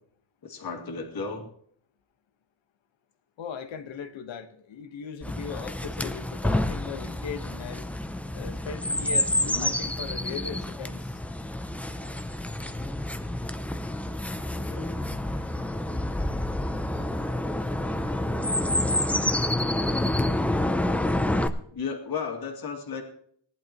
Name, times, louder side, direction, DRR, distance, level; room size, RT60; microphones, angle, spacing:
voice 1, 0.4-1.5 9.4-9.7 11.7-12.9 14.6-15.0 21.7-23.0, left 5 dB, 45° left, 2 dB, 2.4 m, -36 dB
voice 2, 3.4-7.9 8.3-11.2, left 7 dB, 65° left, 8 dB, 1.4 m, -38 dB
Chirp tweet, 5.2-21.5, left 1 dB, 5° left, 0.4 m, -28 dB
18.5 x 11.0 x 3.0 m, 0.63 s
cardioid pair, 165°, 49 cm